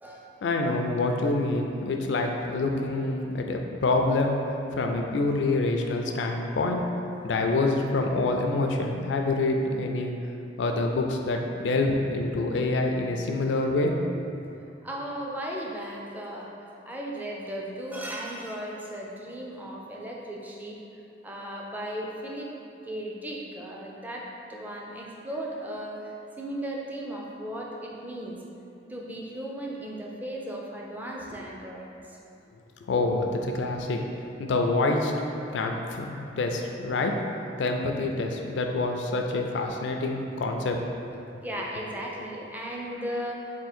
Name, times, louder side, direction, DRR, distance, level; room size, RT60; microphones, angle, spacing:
voice 1, 0.4-4.4 4.7-6.8 7.2-10.1 10.6-13.9 32.9-34.0 34.4-35.1 35.5-37.1 37.6-40.8, left 2 dB, 70° left, 3 dB, 0.4 m, -26 dB
voice 2, 14.8-16.5 16.9-20.8 21.2-22.5 22.8-28.4 28.9-32.2 41.4-43.4, right 1 dB, 10° right, -3 dB, 0.4 m, -36 dB
3.6 x 2.5 x 4.2 m, 2.8 s
head